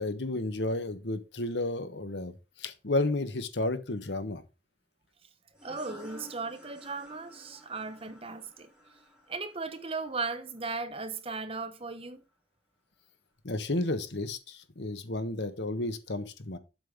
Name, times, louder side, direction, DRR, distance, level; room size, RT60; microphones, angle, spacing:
voice 1, 0.0-2.3 2.6-4.4 13.4-16.6, left 2 dB, 75° left, 1.3 m, -32 dB
sound 1, 5.5-10.9, equal, 5° right, 3.5 m, -53 dB
voice 2, 5.6-8.7 9.3-12.2, right 4 dB, 30° right, 1.0 m, -37 dB
7.7 x 5.2 x 5.2 m
head